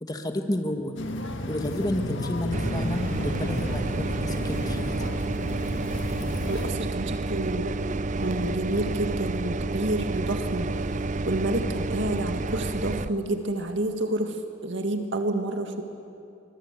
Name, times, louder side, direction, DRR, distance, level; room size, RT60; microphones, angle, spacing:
voice 1, 0.0-0.9 1.5-5.1, left 1 dB, 20° left, 5 dB, 1.5 m, -31 dB
sound 1, 1.0-6.7, left 1 dB, 90° left, 1.7 m, -32 dB
sound 2, 2.5-13.1, right 3 dB, 40° right, 0.5 m, -30 dB
voice 2, 6.5-7.7 8.2-10.7 11.3-15.8, right 1 dB, 80° right, 5 dB, 1.9 m, -29 dB
24.0 x 22.5 x 8.2 m, 2.6 s
head